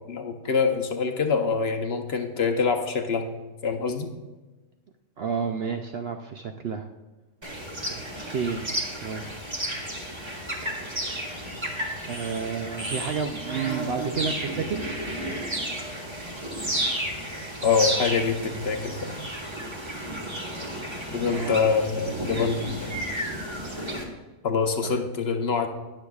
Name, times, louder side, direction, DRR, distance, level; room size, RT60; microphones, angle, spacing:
voice 1, 0.1-3.3 3.6-4.1 17.6-19.2 21.1-23.0 24.4-25.7, left 5 dB, 55° left, 4 dB, 0.9 m, -25 dB
voice 2, 5.2-6.9 8.3-8.6 9.0-9.2 12.1-14.8 21.1-21.6 24.8-25.0, right 6 dB, 65° right, 5 dB, 0.6 m, -30 dB
sound 1, 7.4-24.0, right 1 dB, 20° right, 1.2 m, -32 dB
19.5 x 6.7 x 2.4 m, 1.2 s
omnidirectional pair, 1.4 m